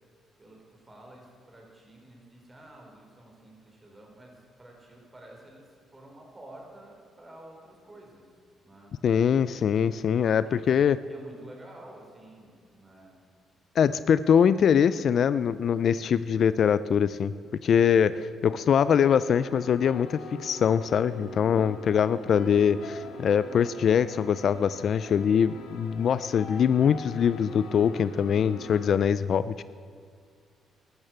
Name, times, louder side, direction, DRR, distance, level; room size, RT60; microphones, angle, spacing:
voice 1, 0.4-8.3 8.6-8.9 10.1-13.2 21.5-21.9, right 1 dB, 20° right, 0 dB, 4.8 m, -50 dB
voice 2, 9.0-11.0 13.8-17.3 17.6-29.6, left 7 dB, 60° left, 15 dB, 0.4 m, -23 dB
sound 1, 19.0-28.9, left 2 dB, 90° left, 1.9 m, -44 dB
12.5 x 12.0 x 7.9 m, 2.1 s
cardioid pair, 90°, 0 cm